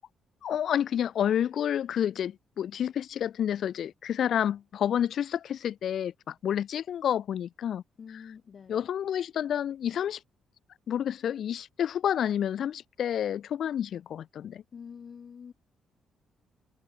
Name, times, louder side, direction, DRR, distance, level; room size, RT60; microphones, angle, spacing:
voice 1, 0.4-7.8 8.1-8.2 8.7-10.2 10.9-14.6, left 9 dB, 65° left, 0.6 m, -29 dB
voice 2, 8.0-8.8 14.7-15.5, left 6 dB, 45° left, 2.4 m, -46 dB
cardioid pair, 90°, 0 cm